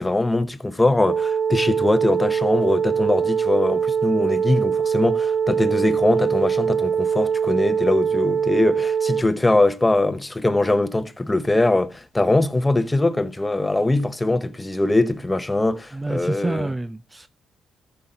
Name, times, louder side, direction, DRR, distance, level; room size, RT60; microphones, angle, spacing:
voice 1, 0.0-16.7, left 2 dB, 15° left, 0.9 m, -22 dB
sound 1, 1.1-9.2, right 7 dB, 40° right, 1.1 m, -22 dB
voice 2, 15.9-17.3, right 2 dB, 15° right, 0.4 m, -28 dB
14.0 x 5.8 x 3.9 m
cardioid pair, 90°, 0 cm